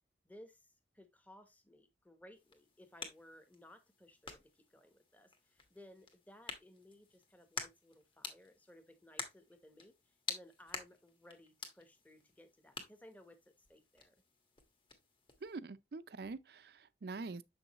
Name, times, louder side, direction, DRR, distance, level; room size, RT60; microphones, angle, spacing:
voice 1, 0.2-14.2, left 1 dB, 10° left, 1.0 m, -60 dB
sound 1, 2.3-15.6, left 4 dB, 30° left, 1.4 m, -50 dB
voice 2, 15.4-17.4, right 3 dB, 60° right, 0.5 m, -45 dB
7.1 x 6.2 x 2.9 m
head